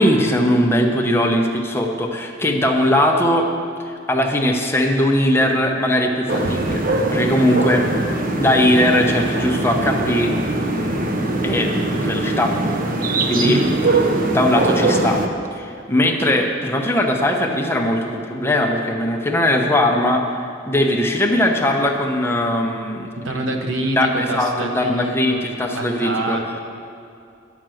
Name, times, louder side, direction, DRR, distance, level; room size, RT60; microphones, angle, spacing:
voice 1, 0.0-3.5 3.9-7.9 8.4-10.3 11.4-11.7 12.0-12.6 13.3-13.6 14.3-15.2 15.5-20.4 20.7-23.1 24.0-26.4, left 1 dB, 15° left, 1 dB, 0.8 m, -19 dB
sound 1, 6.3-15.3, right 2 dB, 45° right, 0.7 m, -21 dB
voice 2, 13.4-13.8 23.2-25.5 25.7-26.6, right 1 dB, 85° right, 3 dB, 1.1 m, -25 dB
10.5 x 6.0 x 7.7 m, 2.5 s
head